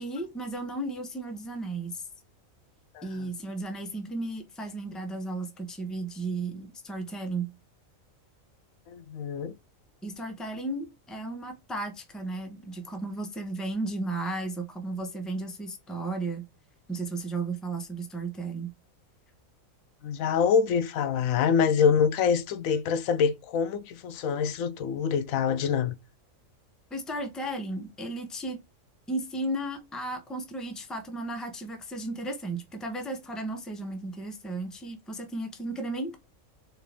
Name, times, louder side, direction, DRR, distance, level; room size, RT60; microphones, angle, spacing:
voice 1, 0.0-2.0 3.0-7.5 10.0-16.5 16.9-18.7 26.9-28.6 29.1-36.2, right 2 dB, ahead, 0.6 m, -34 dB
voice 2, 2.9-3.3 8.9-9.5 20.0-25.9, left 6 dB, 85° left, 1.0 m, -25 dB
4.5 x 2.5 x 3.4 m
omnidirectional pair, 1.4 m